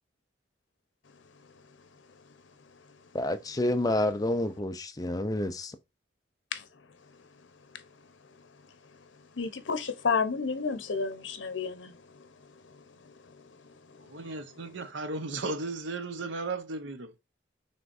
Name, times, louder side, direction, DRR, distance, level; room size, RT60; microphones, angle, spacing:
voice 1, 3.1-5.7, left 1 dB, 20° left, 0.5 m, -29 dB
voice 2, 9.3-14.9, left 5 dB, 80° left, 0.7 m, -33 dB
voice 3, 14.1-17.1, right 3 dB, 80° right, 0.8 m, -35 dB
5.7 x 3.2 x 2.6 m
head